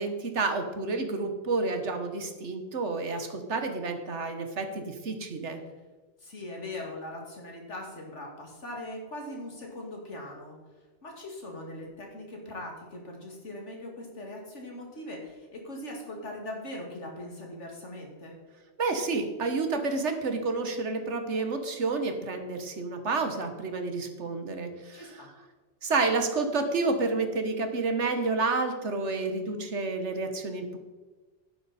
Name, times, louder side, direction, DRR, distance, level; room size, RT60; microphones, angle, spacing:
voice 1, 0.0-5.6 18.8-25.1 25.8-30.8, right 3 dB, 80° right, 7 dB, 1.6 m, -30 dB
voice 2, 6.2-10.6 11.0-18.3 24.9-25.3, left 1 dB, 85° left, 0 dB, 2.8 m, -40 dB
11.0 x 10.0 x 4.3 m, 1.3 s
omnidirectional pair, 1.2 m